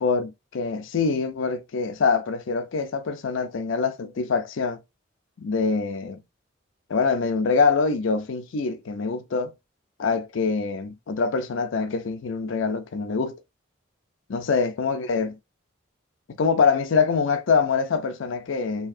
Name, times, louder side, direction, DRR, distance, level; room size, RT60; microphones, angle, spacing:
voice 1, 0.0-4.8 5.4-6.2 6.9-9.5 10.0-13.4 14.3-15.4 16.3-18.9, left 5 dB, 75° left, 0.5 m, -24 dB
2.7 x 2.7 x 2.5 m
head